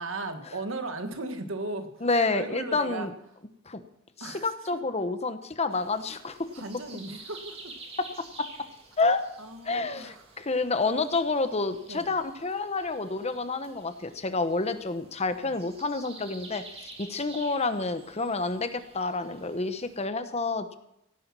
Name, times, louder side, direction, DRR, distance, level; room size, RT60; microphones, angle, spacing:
voice 1, 0.0-3.1 4.2-4.5 6.5-7.8 9.4-10.2 11.9-12.1 15.4-15.5, right 2 dB, 70° right, 8 dB, 1.6 m, -37 dB
voice 2, 2.0-3.1 3.7-3.8 4.2-6.4 8.0-8.1 9.0-9.2 9.6-20.8, left 3 dB, 30° left, 10 dB, 1.0 m, -29 dB
sound 1, 5.7-20.1, right 3 dB, 30° right, 2.5 m, -50 dB
17.0 x 9.7 x 6.1 m, 0.84 s
head